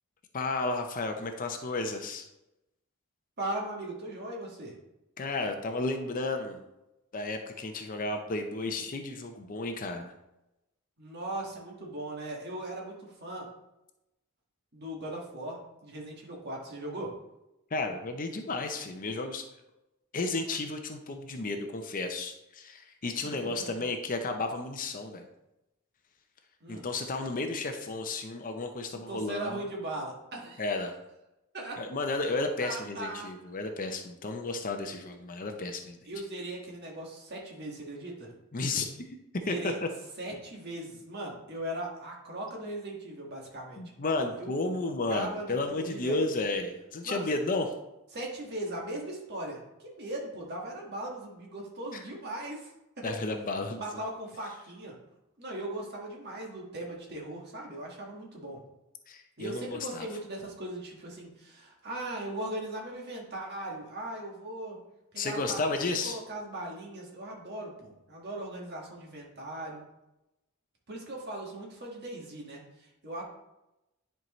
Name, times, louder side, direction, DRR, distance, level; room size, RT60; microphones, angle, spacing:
voice 1, 0.3-2.3 5.2-6.6 7.1-10.1 17.7-19.5 20.1-25.2 26.7-29.6 30.6-30.9 31.8-36.0 38.5-39.1 39.5-39.7 43.8-47.7 51.9-52.0 53.0-53.8 59.1-60.1 65.2-66.2, left 3 dB, 40° left, 5 dB, 0.6 m, -33 dB
voice 2, 3.4-4.7 11.0-13.5 14.7-17.1 23.2-23.9 26.6-26.9 29.1-30.6 31.5-31.8 32.6-33.3 36.0-38.3 39.4-39.8 40.2-43.8 44.4-44.5 45.1-46.2 47.0-47.3 48.1-52.7 53.0-53.1 53.7-54.9 55.4-58.6 59.4-64.8 65.1-69.8 70.9-73.2, right 1 dB, 50° right, -2 dB, 1.6 m, -39 dB
10.0 x 4.6 x 3.1 m, 0.94 s
head